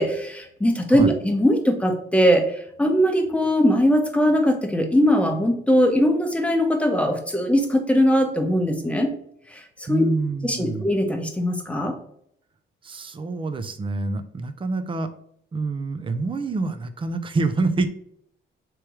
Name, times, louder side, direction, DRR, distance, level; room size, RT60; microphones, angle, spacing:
voice 1, 0.0-9.1 9.5-9.6 9.9-10.0 10.4-11.9, equal, 5° left, 3 dB, 0.9 m, -20 dB
voice 2, 9.9-10.9 12.8-15.1 15.5-17.9, right 3 dB, 25° right, 9 dB, 0.5 m, -26 dB
3.3 x 3.0 x 4.7 m, 0.70 s
cardioid pair, 90°, 20 cm